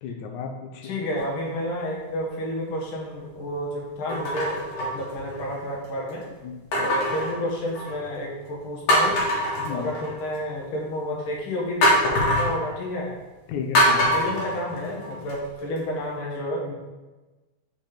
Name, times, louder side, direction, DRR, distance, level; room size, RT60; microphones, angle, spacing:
voice 1, 0.0-1.0 6.4-6.6 9.6-9.9 13.5-14.1, left 6 dB, 90° left, 3 dB, 2.2 m, -33 dB
voice 2, 0.8-6.2 6.8-9.2 9.7-13.1 14.1-16.7, left 1 dB, 50° left, -3 dB, 2.0 m, -30 dB
sound 1, 1.2-1.7 2.3-2.5 4.1-5.6 6.7-8.1 8.5-8.6 8.9-10.4 11.8-12.6 13.7-15.3 15.8-15.9, equal, 70° left, 3.1 m, -23 dB
5.9 x 5.1 x 5.2 m, 1.2 s
omnidirectional pair, 3.4 m